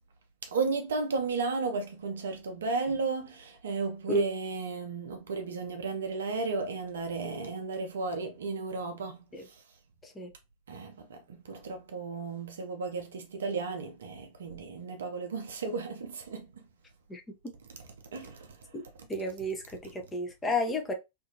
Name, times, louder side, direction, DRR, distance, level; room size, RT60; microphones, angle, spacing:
voice 1, 0.4-9.6 10.7-16.7 18.1-18.6, right 4 dB, 65° right, 0.6 m, -34 dB
voice 2, 19.1-20.9, left 1 dB, 15° left, 0.6 m, -32 dB
2.5 x 2.5 x 2.7 m
figure-of-eight pair, 90°, 0 cm